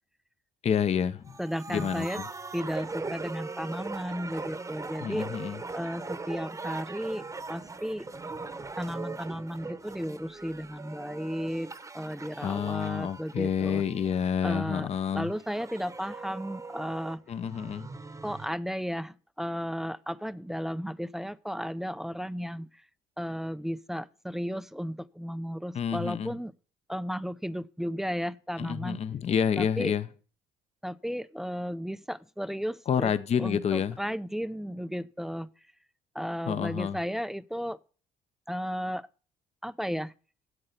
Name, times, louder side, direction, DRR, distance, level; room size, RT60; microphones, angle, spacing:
voice 1, 0.6-1.3 1.7-2.2 5.0-5.6 12.4-15.3 17.3-17.9 25.7-26.3 28.6-30.0 32.9-34.0 36.5-37.0, left 8 dB, 40° left, 0.7 m, -28 dB
sound 1, 1.3-14.3 14.9-18.5, right 3 dB, 20° right, 1.0 m, -40 dB
voice 2, 1.4-2.2 2.5-5.3 5.7-8.1 8.8-11.7 11.9-13.8 14.4-14.9 15.1-17.2 18.2-22.7 23.2-26.5 26.9-29.0 29.6-29.9 30.8-33.1 33.4-35.5 36.1-37.8 38.5-39.1 39.6-40.1, equal, ahead, 0.4 m, -34 dB
9.7 x 7.9 x 6.6 m
cardioid pair, 110°, 17 cm